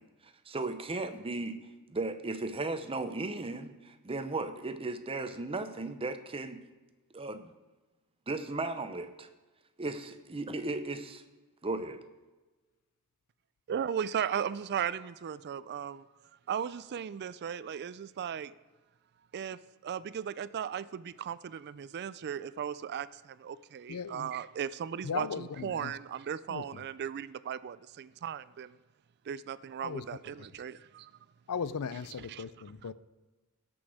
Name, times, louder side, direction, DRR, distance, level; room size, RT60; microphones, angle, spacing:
voice 1, 0.0-6.6 7.1-7.5 8.3-9.3 9.8-11.2 11.6-12.0, right 2 dB, 25° right, 0.7 m, -36 dB
voice 2, 13.7-16.1 16.5-18.5 19.3-28.8 29.3-31.1 32.3-32.4, right 8 dB, 50° right, 0.3 m, -36 dB
voice 3, 23.9-24.3 25.0-26.0 26.5-26.9 29.8-30.1 31.5-32.9, left 6 dB, 85° left, 0.5 m, -37 dB
17.0 x 6.2 x 4.9 m
head